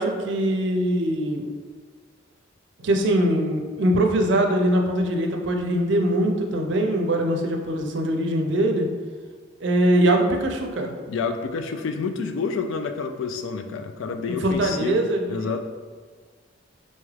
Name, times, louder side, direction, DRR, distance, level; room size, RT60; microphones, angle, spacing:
voice 1, 0.0-1.5 2.8-8.9 9.6-10.9 14.3-15.6, right 1 dB, 65° right, 3 dB, 0.5 m, -22 dB
voice 2, 11.1-15.6, left 5 dB, 75° left, 7 dB, 0.3 m, -29 dB
4.1 x 2.3 x 3.2 m, 1.5 s
head